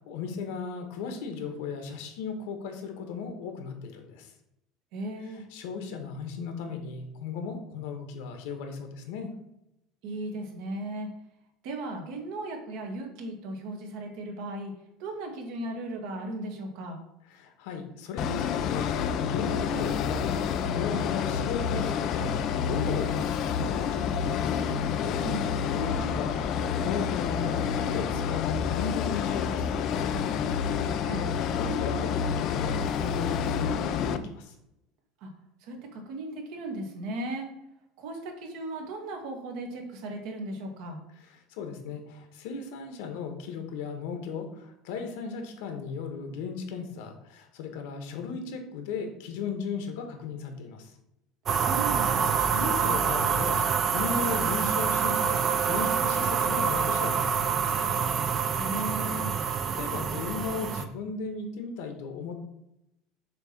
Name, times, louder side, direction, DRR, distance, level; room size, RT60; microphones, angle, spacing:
voice 1, 0.1-4.3 5.3-9.3 17.3-24.6 25.7-26.4 26.8-30.0 31.3-34.5 41.5-50.9 52.5-57.8 59.4-62.4, left 5 dB, 75° left, 5 dB, 1.3 m, -36 dB
voice 2, 4.9-5.4 10.0-11.1 11.6-14.7 15.0-17.0 25.2-25.5 31.0-31.2 35.2-35.3 35.6-37.5 38.0-41.0 51.6-52.3 58.6-59.3, right 1 dB, 60° right, 2 dB, 1.6 m, -36 dB
sound 1, 18.2-34.2, left 7 dB, 40° left, 0.4 m, -28 dB
sound 2, 51.5-60.8, right 6 dB, 25° right, 0.5 m, -26 dB
6.9 x 3.1 x 5.8 m, 0.86 s
cardioid pair, 165°, 0 cm